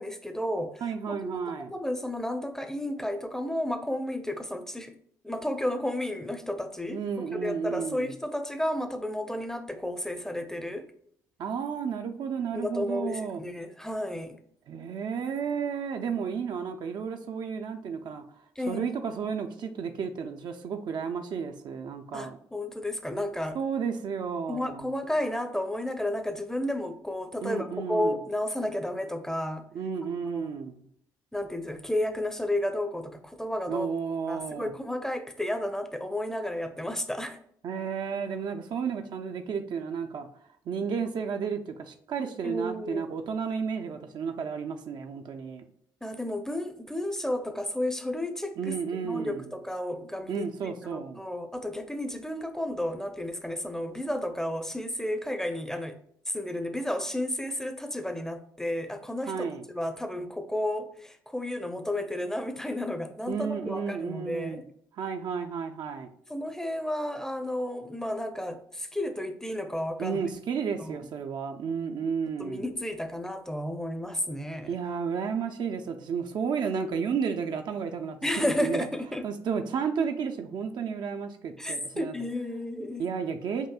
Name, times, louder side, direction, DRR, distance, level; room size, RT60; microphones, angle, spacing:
voice 1, 0.0-1.3 1.7-4.9 5.2-10.9 12.5-14.4 18.6-19.0 22.1-23.6 24.5-29.6 30.3-30.5 31.3-33.9 34.3-37.4 42.4-43.1 46.0-48.8 49.0-56.0 56.3-59.4 59.7-64.6 66.3-70.2 70.8-71.0 72.4-74.8 78.2-79.3 81.6-83.1, left 1 dB, 5° left, 7 dB, 0.6 m, -32 dB
voice 2, 0.8-1.7 6.9-8.1 11.4-13.4 14.7-18.2 18.7-22.4 23.5-24.9 27.4-28.2 29.7-30.8 33.7-34.7 37.6-40.3 40.7-45.6 48.6-49.5 50.3-51.2 59.3-59.6 63.3-64.6 65.0-66.1 70.0-72.6 74.7-78.3 78.6-78.9 79.2-82.1 83.0-83.7, right 6 dB, 50° right, 6 dB, 0.5 m, -32 dB
5.6 x 2.6 x 2.2 m, 0.67 s
figure-of-eight pair, 45°, 10 cm